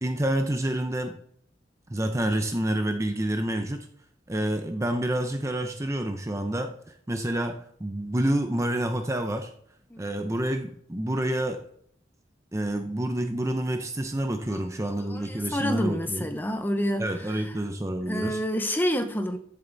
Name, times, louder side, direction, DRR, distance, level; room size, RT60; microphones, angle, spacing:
voice 1, 0.0-1.2 1.9-3.9 4.3-9.5 10.0-11.6 12.5-16.3 17.0-18.4, right 1 dB, 15° right, 0.7 m, -28 dB
voice 2, 14.5-17.5 18.0-19.4, equal, 10° left, 0.9 m, -29 dB
14.5 x 7.0 x 4.0 m
head